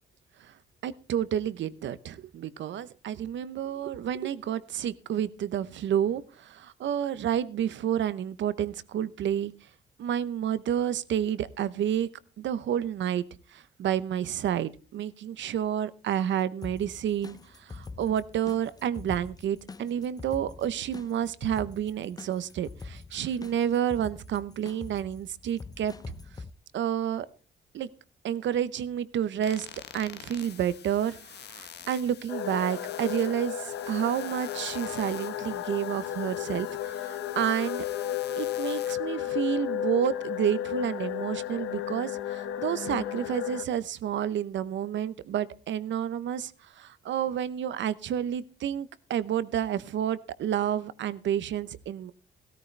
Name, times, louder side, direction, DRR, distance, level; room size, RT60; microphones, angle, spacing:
voice 1, 0.8-9.5 10.0-12.1 12.4-13.2 13.5-25.9 26.7-27.3 27.7-27.9 28.2-29.7 29.9-37.9 38.3-52.1, right 10 dB, 70° right, 16 dB, 0.8 m, -30 dB
sound 1, 16.6-26.5, left 3 dB, 20° left, 0.6 m, -44 dB
sound 2, 29.4-39.0, left 9 dB, 55° left, 1.1 m, -47 dB
sound 3, 32.3-43.6, left 11 dB, 80° left, 1.1 m, -33 dB
16.0 x 13.5 x 3.3 m, 0.36 s
cardioid pair, 90°, 20 cm